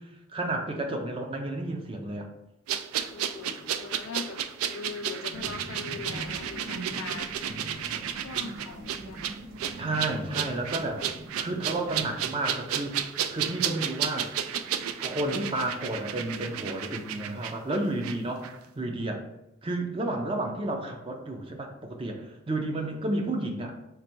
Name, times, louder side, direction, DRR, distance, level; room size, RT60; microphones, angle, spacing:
voice 1, 0.3-2.3 9.7-11.0 11.4-13.0 13.3-14.3 15.0-19.2 19.6-23.7, right 2 dB, 25° right, 3 dB, 0.4 m, -31 dB
sound 1, 2.7-18.2 18.4-18.6, right 9 dB, 90° right, 0.3 m, -33 dB
voice 2, 3.1-7.3 8.2-9.2, left 6 dB, 75° left, 9 dB, 0.3 m, -41 dB
sound 2, 5.3-12.3, right 1 dB, 60° right, 0.7 m, -42 dB
3.2 x 2.5 x 4.4 m, 0.89 s
head